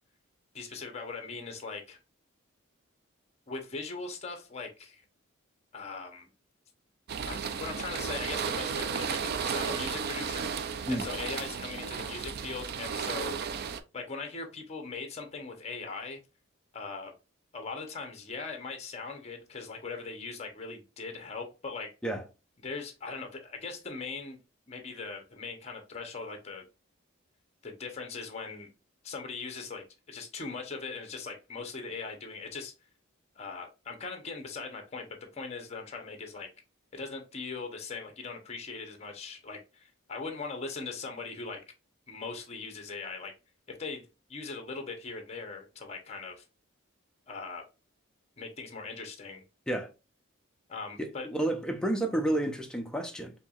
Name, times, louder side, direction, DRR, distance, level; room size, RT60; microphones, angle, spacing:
voice 1, 0.5-2.0 3.5-5.0 5.7-6.3 7.2-10.4 10.9-13.4 13.9-16.2 16.7-17.1 17.5-21.9 22.6-24.4 24.7-26.7 27.6-28.7 29.0-32.7 33.4-35.1 35.3-36.5 36.9-41.6 42.1-43.3 43.8-46.4 47.3-47.6 48.4-49.4 50.7-51.3, left 4 dB, 30° left, 0.8 m, -40 dB
sound 1, 7.1-13.8, right 6 dB, 50° right, 0.3 m, -34 dB
voice 2, 51.0-53.3, right 1 dB, 5° left, 0.5 m, -30 dB
4.5 x 2.8 x 2.3 m
head